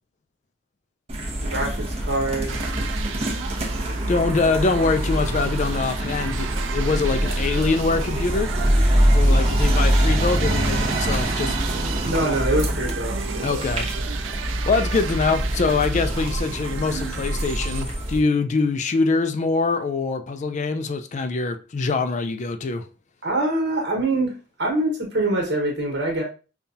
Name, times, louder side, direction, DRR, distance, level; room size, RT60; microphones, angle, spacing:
sound 1, 1.1-18.2, right 1 dB, 35° right, 0.8 m, -24 dB
sound 2, 1.3-4.4 4.6-7.2, equal, 10° left, 1.1 m, -42 dB
voice 1, 1.4-2.6 7.2-7.3 12.0-13.6 23.2-26.2, right 2 dB, 65° right, 1.4 m, -25 dB
sound 3, 2.5-17.8, right 8 dB, 90° right, 0.4 m, -35 dB
voice 2, 4.1-8.5 9.1-11.6 11.9-12.1 13.4-13.9 14.3-22.9, left 4 dB, 40° left, 0.4 m, -24 dB
5.4 x 2.3 x 2.7 m
head